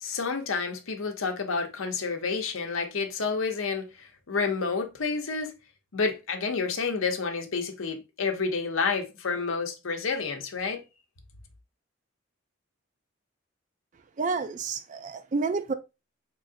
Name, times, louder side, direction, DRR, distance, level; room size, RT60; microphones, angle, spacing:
voice 1, 0.0-5.5 5.9-10.8, left 4 dB, 80° left, 0.7 m, -29 dB
voice 2, 14.2-15.7, right 4 dB, 35° right, 0.3 m, -29 dB
3.8 x 3.1 x 2.5 m
head